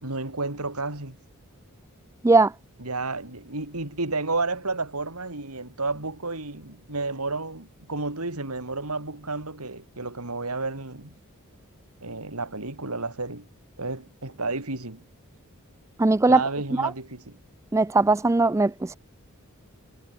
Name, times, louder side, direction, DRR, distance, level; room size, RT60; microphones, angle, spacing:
voice 1, 0.0-1.2 2.8-11.2 12.0-13.5 13.8-15.0 16.3-17.4, right 3 dB, 90° right, 4.3 m, -31 dB
voice 2, 16.0-16.4 16.7-16.9 17.7-19.0, right 3 dB, 15° right, 0.3 m, -19 dB
head